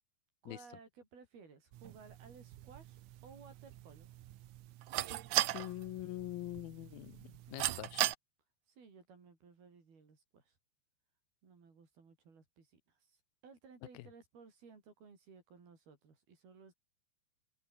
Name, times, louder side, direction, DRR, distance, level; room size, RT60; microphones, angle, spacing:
voice 1, 0.4-4.1 8.7-10.6 11.4-13.2 13.4-16.7, right 5 dB, 90° right, 7.8 m, -58 dB
sound 1, 1.7-8.1, right 14 dB, 70° right, 1.9 m, -39 dB
voice 2, 5.5-8.1 13.9-14.1, left 17 dB, 85° left, 2.6 m, -44 dB
omnidirectional pair, 4.3 m